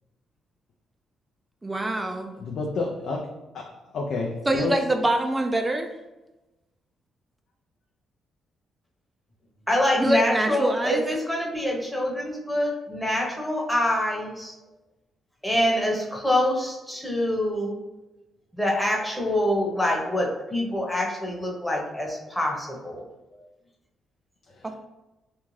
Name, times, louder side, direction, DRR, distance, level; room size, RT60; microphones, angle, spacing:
voice 1, 1.6-2.3 4.5-5.9 10.0-11.0 24.6-24.8, right 1 dB, 20° right, 5 dB, 0.3 m, -24 dB
voice 2, 2.4-3.2 3.5-3.6 3.9-4.8 24.5-24.8, left 3 dB, 70° left, -1 dB, 0.4 m, -29 dB
voice 3, 9.7-14.5 15.4-17.8 18.5-23.0, left 1 dB, 5° left, -2 dB, 0.8 m, -25 dB
2.5 x 2.3 x 3.1 m, 1.0 s
supercardioid pair, 60°, 0 cm